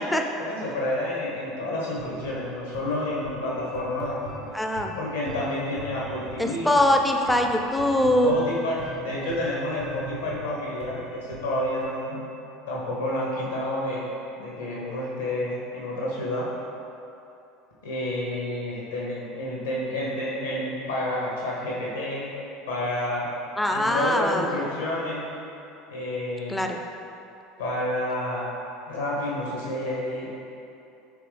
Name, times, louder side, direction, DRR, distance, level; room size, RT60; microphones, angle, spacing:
voice 1, 0.4-4.2 4.9-6.8 7.2-7.3 8.0-12.2 12.7-14.1 14.4-16.5 17.8-22.3 22.7-23.3 23.7-25.3 25.9-26.6 27.6-28.5 28.9-30.3, left 1 dB, 80° left, -5 dB, 1.1 m, -29 dB
sound 1, 1.9-11.8, right 3 dB, 65° right, 1.1 m, -41 dB
voice 2, 4.5-5.0 6.4-8.4 23.6-24.5 26.5-26.8, left 1 dB, 5° left, 3 dB, 0.4 m, -22 dB
4.9 x 3.3 x 3.3 m, 2.9 s
hypercardioid pair, 75°, 0 cm